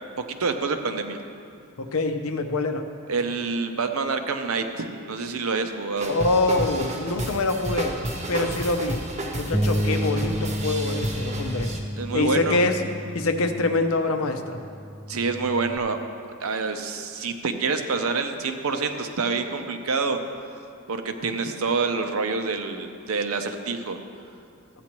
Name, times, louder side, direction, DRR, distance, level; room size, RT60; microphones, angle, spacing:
voice 1, 0.3-1.2 3.1-6.1 12.0-12.6 15.1-16.0 16.4-20.2 20.9-24.0, right 4 dB, 75° right, 7 dB, 0.7 m, -27 dB
voice 2, 1.8-2.8 6.1-8.0 8.3-9.0 9.3-11.7 12.1-12.8 13.1-14.6, left 2 dB, 70° left, 7 dB, 0.7 m, -25 dB
sound 1, 6.0-11.8, right 1 dB, 30° right, 0.9 m, -31 dB
Bass guitar, 9.5-15.8, equal, 10° right, 0.3 m, -31 dB
14.5 x 8.4 x 3.0 m, 2.4 s
head